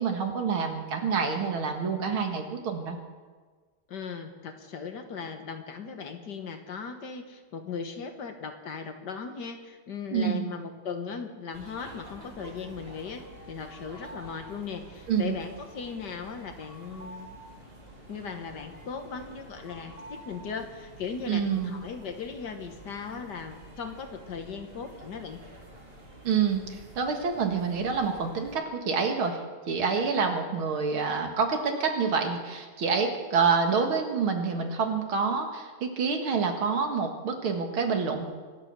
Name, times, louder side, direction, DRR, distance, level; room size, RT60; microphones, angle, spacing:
voice 1, 0.0-3.0 10.1-10.5 15.1-15.4 21.3-21.8 26.2-26.6 27.0-29.4 29.7-38.3, right 5 dB, 80° right, 4 dB, 2.6 m, -27 dB
voice 2, 3.9-17.4 18.1-25.4, left 5 dB, 60° left, 6 dB, 1.7 m, -38 dB
sound 1, 11.5-28.6, right 1 dB, 25° right, 2.6 m, -48 dB
25.0 x 8.5 x 6.8 m, 1.4 s
omnidirectional pair, 2.3 m